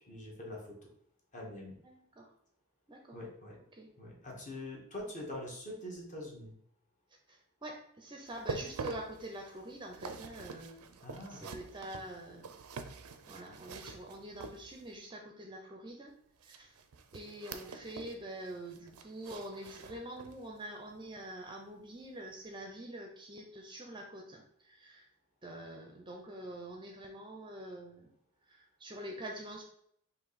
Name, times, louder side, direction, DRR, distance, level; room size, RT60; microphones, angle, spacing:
voice 1, 0.1-0.9 1.3-1.8 3.1-3.6 4.0-6.5 11.0-11.4, left 1 dB, 35° left, -2 dB, 1.2 m, -44 dB
voice 2, 1.8-2.3 2.9-3.2 3.7-3.9 7.3-11.0 11.3-12.5 13.3-16.1 16.4-16.8 17.1-25.1 25.4-28.1 28.5-29.6, right 1 dB, 20° right, 2 dB, 0.5 m, -46 dB
sound 1, 8.3-15.0 16.4-18.2 18.5-20.5 20.9-21.1 21.6-21.7, right 4 dB, 70° right, 0.4 m, -46 dB
4.6 x 2.7 x 4.1 m, 0.69 s
head